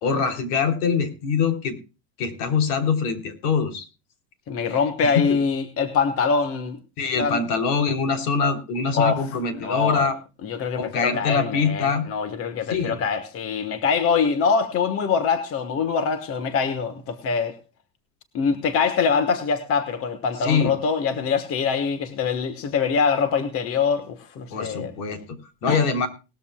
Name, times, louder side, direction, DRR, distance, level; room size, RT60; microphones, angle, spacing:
voice 1, 0.0-1.8 2.2-3.9 4.7-4.8 5.1-5.2 7.0-10.2 10.8-12.1 12.7-13.0 20.4-20.7 24.5-26.1, left 5 dB, 65° left, 6 dB, 3.4 m, -23 dB
voice 2, 4.5-6.8 7.2-7.4 8.9-9.3 9.6-10.1 10.4-17.6 18.3-24.9 25.7-25.8, left 5 dB, 30° left, 9 dB, 1.2 m, -24 dB
19.5 x 13.5 x 2.2 m, 0.31 s
supercardioid pair, 150°, 49 cm